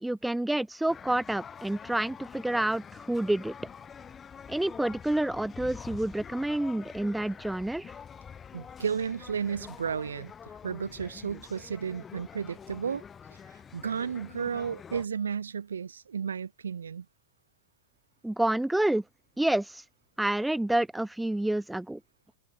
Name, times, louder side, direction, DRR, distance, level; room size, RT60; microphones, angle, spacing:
voice 1, 0.0-3.5 4.5-7.9 18.2-19.0 19.4-19.8 20.2-22.0, right 1 dB, 5° right, 0.3 m, -28 dB
sound 1, 0.9-15.1, left 7 dB, 20° left, 3.5 m, -46 dB
voice 2, 8.5-10.3 10.6-13.0 13.7-17.0, right 7 dB, 70° right, 1.3 m, -33 dB
figure-of-eight pair, 90°, 0 cm